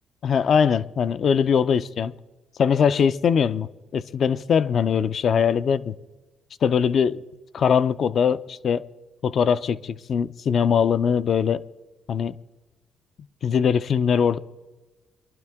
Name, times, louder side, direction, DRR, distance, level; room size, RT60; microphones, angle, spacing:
voice 1, 0.2-2.1 2.6-5.9 6.6-7.2 7.5-8.9 9.2-11.6 12.1-12.3 13.4-14.4, left 7 dB, 55° left, 0.5 m, -21 dB
23.5 x 11.5 x 3.6 m
cardioid pair, 90°, 0 cm